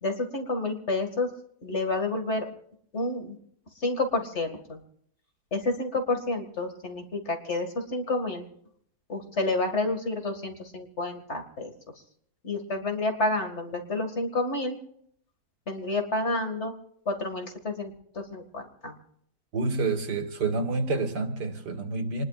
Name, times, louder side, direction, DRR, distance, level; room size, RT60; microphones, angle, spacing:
voice 1, 0.0-1.3 1.6-2.5 2.9-3.4 3.8-4.8 5.5-8.4 9.1-11.7 12.4-14.8 15.7-16.7 17.1-19.0, left 2 dB, 45° left, 4 dB, 2.4 m, -29 dB
voice 2, 19.5-22.2, right 3 dB, 85° right, 5 dB, 2.4 m, -28 dB
27.0 x 20.5 x 2.5 m, 0.66 s
omnidirectional pair, 1.7 m